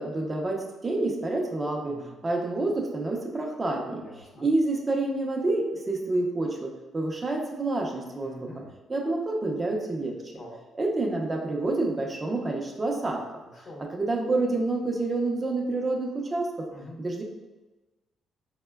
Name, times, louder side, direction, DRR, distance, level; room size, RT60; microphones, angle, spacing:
voice 1, 0.0-4.0 4.4-8.4 8.9-10.3 10.7-13.2 13.8-16.7 17.0-17.2, right 2 dB, 25° right, 1 dB, 0.6 m, -28 dB
voice 2, 1.8-2.2 4.0-4.5 8.2-8.7 10.4-10.6 13.5-13.9 16.7-17.0, left 1 dB, 45° left, -3 dB, 0.8 m, -45 dB
4.2 x 2.1 x 2.2 m, 1.2 s
cardioid pair, 90°, 0 cm